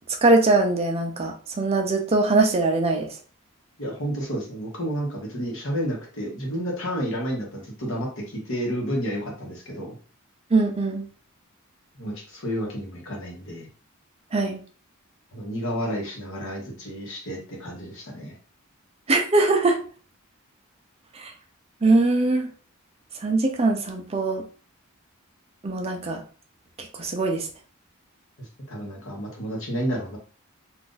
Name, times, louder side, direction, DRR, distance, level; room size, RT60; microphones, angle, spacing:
voice 1, 0.2-3.1 10.5-11.0 14.3-14.6 19.1-19.8 21.1-21.3 21.8-22.5 23.2-24.4 25.6-26.2 26.8-27.5, right 2 dB, 30° right, 3 dB, 0.5 m, -21 dB
voice 2, 3.8-10.0 11.9-13.7 15.3-18.3 28.4-30.2, equal, 65° left, 0 dB, 1.1 m, -31 dB
2.5 x 2.5 x 3.8 m, 0.40 s
head